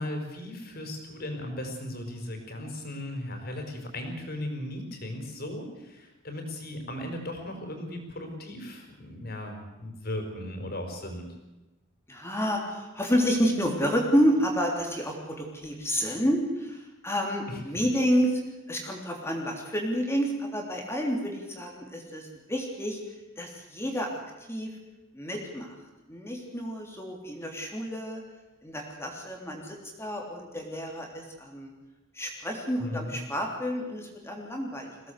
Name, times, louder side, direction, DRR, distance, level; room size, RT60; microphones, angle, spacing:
voice 1, 0.0-11.3 17.5-17.8 32.8-33.2, left 1 dB, 50° left, 4 dB, 5.1 m, -37 dB
voice 2, 12.1-18.4 18.7-23.0 23.4-24.2 24.5-24.7 25.1-25.8 26.1-28.2 28.6-31.7 32.1-34.9, equal, 15° left, 1 dB, 3.2 m, -29 dB
23.0 x 17.5 x 8.3 m, 1.1 s
head